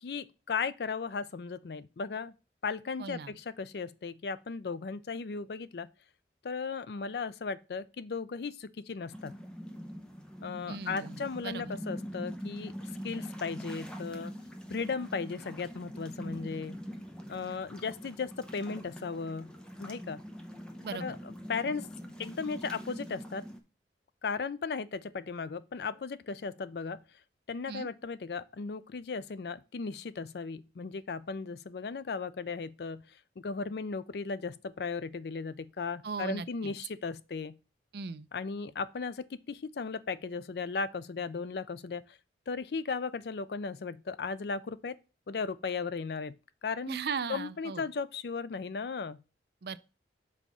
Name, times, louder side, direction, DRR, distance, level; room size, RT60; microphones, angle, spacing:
voice 1, 0.0-2.3 2.6-5.9 6.4-9.3 10.4-12.7 13.0-14.3 14.7-16.8 17.3-20.2 21.0-21.9 22.2-23.4 24.2-27.0 27.5-33.1 33.4-37.6 38.3-42.2 42.5-45.0 45.3-46.3 46.6-47.0 47.3-49.2, left 5 dB, 65° left, 0.4 m, -36 dB
voice 2, 3.0-3.4 10.7-11.7 20.8-21.2 27.7-27.9 36.0-36.7 37.9-38.3 46.9-47.9 49.6-49.8, right 5 dB, 60° right, 0.5 m, -38 dB
sound 1, 9.1-23.6, equal, 5° left, 0.8 m, -43 dB
5.6 x 4.0 x 6.1 m
head